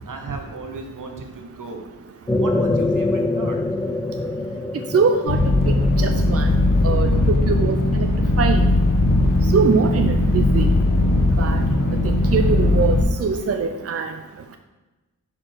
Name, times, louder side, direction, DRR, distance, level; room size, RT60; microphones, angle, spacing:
voice 1, 0.0-1.8 2.3-3.6, right 3 dB, 75° right, 3 dB, 1.2 m, -35 dB
sound 1, 2.3-7.3, left 2 dB, 10° left, 0.3 m, -25 dB
voice 2, 4.9-5.4 5.7-6.5 6.8-8.1 8.4-8.7 9.5-10.7 11.4-11.6 12.0-14.1, right 5 dB, 50° right, 5 dB, 0.5 m, -22 dB
sound 2, 5.3-13.0, left 2 dB, 90° left, 1.1 m, -18 dB
6.2 x 4.4 x 6.4 m, 1.1 s
wide cardioid pair, 95°, 32 cm